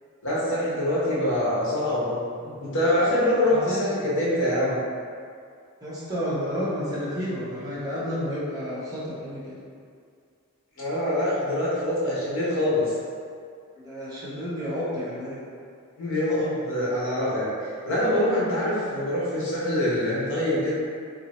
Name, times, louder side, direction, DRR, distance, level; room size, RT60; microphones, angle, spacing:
voice 1, 0.2-4.8 10.8-12.9 16.0-17.5 17.8-20.7, left 1 dB, 60° left, -8 dB, 1.1 m, -24 dB
voice 2, 3.4-3.9 5.8-9.5 13.8-15.4, equal, 15° right, -10 dB, 1.0 m, -31 dB
2.9 x 2.8 x 4.1 m, 2.2 s
head